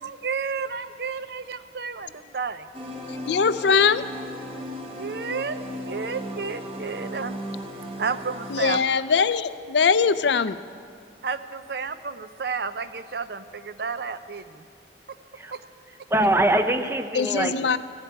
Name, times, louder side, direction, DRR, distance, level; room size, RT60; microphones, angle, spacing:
voice 1, 0.0-2.7 5.0-7.4 8.0-8.8 11.2-14.6 15.5-15.6, right 5 dB, 65° right, 12 dB, 0.6 m, -31 dB
sound 1, 2.7-8.8, equal, 30° right, 1.2 m, -36 dB
voice 2, 3.3-4.0 8.5-10.6 17.2-17.8, left 5 dB, 75° left, 14 dB, 0.5 m, -21 dB
voice 3, 16.1-17.8, right 1 dB, 15° right, 7 dB, 0.6 m, -23 dB
15.0 x 8.0 x 9.4 m, 2.3 s
head